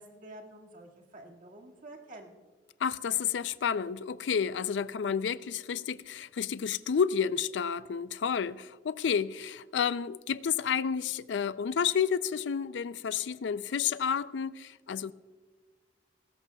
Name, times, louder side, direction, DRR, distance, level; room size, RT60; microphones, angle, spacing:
voice 1, 0.0-2.4, right 1 dB, 50° right, 1.9 m, -49 dB
voice 2, 2.8-15.1, left 7 dB, 85° left, 0.4 m, -30 dB
19.0 x 16.5 x 2.3 m
head